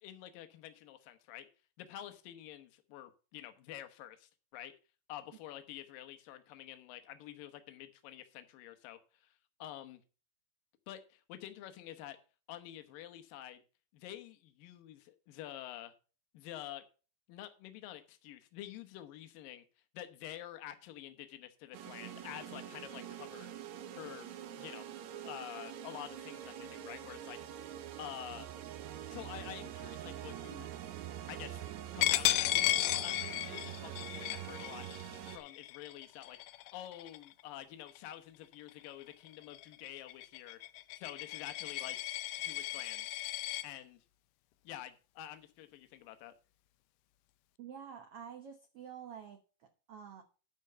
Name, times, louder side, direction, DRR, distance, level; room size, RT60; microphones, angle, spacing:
voice 1, 0.0-1.5 1.8-4.7 5.1-9.3 9.6-10.0 10.9-12.2 12.5-13.6 13.9-15.9 16.3-16.8 17.3-19.6 19.9-23.5 24.0-24.3 24.6-24.8 25.2-27.6 28.0-28.5 29.1-30.7 31.3-31.6 31.9-32.8 33.0-34.9 35.3-36.4 36.7-40.6 41.0-42.0 42.4-43.1 43.6-44.0 44.6-46.3, left 12 dB, 70° left, 8 dB, 2.6 m, -48 dB
sound 1, 21.7-35.4, right 10 dB, 70° right, 1.8 m, -45 dB
Coin (dropping), 32.0-37.4 37.9-38.1 38.5-43.6, left 16 dB, 85° left, 1.8 m, -35 dB
voice 2, 47.6-50.2, right 8 dB, 85° right, 6 dB, 1.3 m, -49 dB
12.0 x 4.6 x 6.7 m, 0.35 s
omnidirectional pair, 4.3 m